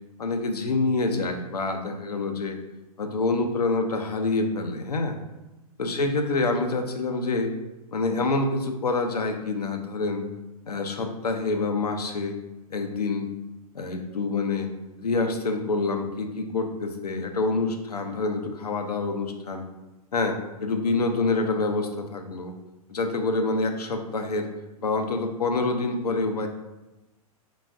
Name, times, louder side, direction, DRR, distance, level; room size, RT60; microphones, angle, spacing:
voice 1, 0.2-2.6 3.0-5.2 5.8-7.5 7.9-10.2 10.7-12.3 12.7-13.3 13.7-14.7 15.0-19.6 20.1-22.5 22.9-24.5 24.8-26.5, left 3 dB, 80° left, 5 dB, 0.6 m, -26 dB
3.8 x 3.6 x 2.4 m, 1.0 s
figure-of-eight pair, 105°, 20 cm